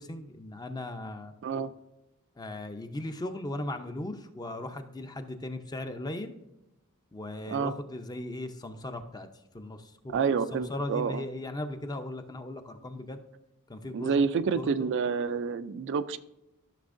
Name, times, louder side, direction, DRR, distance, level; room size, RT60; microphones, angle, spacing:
voice 1, 0.0-1.3 2.4-6.3 7.1-9.3 9.5-13.2 13.7-14.2 14.5-14.9, left 1 dB, 20° left, 7 dB, 0.6 m, -38 dB
voice 2, 10.1-11.2 13.9-16.2, right 5 dB, 55° right, 12 dB, 0.4 m, -28 dB
13.0 x 6.3 x 2.6 m, 0.95 s
head